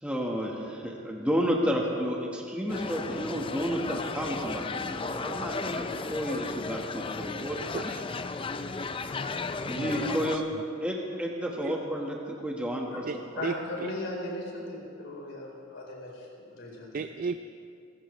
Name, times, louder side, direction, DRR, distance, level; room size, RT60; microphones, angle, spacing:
voice 1, 0.0-7.6 7.8-7.9 9.6-10.4 10.8-13.0, equal, 5° right, -2 dB, 1.5 m, -31 dB
sound 1, 2.7-10.4, left 4 dB, 25° left, 0.4 m, -35 dB
voice 2, 7.7-8.1 9.8-10.4 11.6-11.7 13.0-13.9 16.9-17.4, right 4 dB, 45° right, 10 dB, 0.3 m, -35 dB
voice 3, 13.4-17.0, left 1 dB, 65° left, -3 dB, 4.2 m, -37 dB
26.0 x 15.5 x 3.2 m, 2.5 s
head